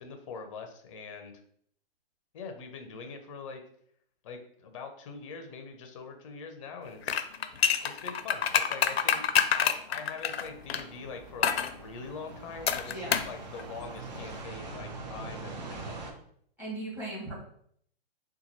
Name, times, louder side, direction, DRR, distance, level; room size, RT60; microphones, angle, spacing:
voice 1, 0.0-1.3 2.3-3.6 4.2-7.2 7.8-9.2 9.5-16.2, left 5 dB, 35° left, 6 dB, 0.5 m, -43 dB
sound 1, 7.0-10.8 11.4-11.7 12.7-13.3 13.6-13.7, left 8 dB, 90° left, 0.5 m, -27 dB
sound 2, 10.4-16.1, right 3 dB, 45° right, 0.7 m, -43 dB
voice 2, 12.8-13.2 16.6-17.3, right 2 dB, 5° right, -7 dB, 1.4 m, -38 dB
4.0 x 2.3 x 3.0 m, 0.65 s
hypercardioid pair, 150°, 30 cm